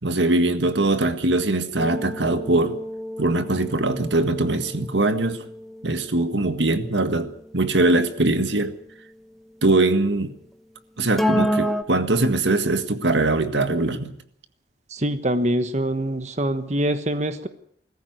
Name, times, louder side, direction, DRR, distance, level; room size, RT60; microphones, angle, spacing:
voice 1, 0.0-2.8 3.2-5.4 5.8-8.7 9.6-10.4 11.0-14.2, right 2 dB, 85° right, 1.8 m, -22 dB
sound 1, 1.8-8.0 11.2-11.8, equal, ahead, 1.1 m, -30 dB
voice 2, 14.9-17.5, right 1 dB, 40° right, 1.3 m, -24 dB
21.5 x 14.0 x 9.4 m
head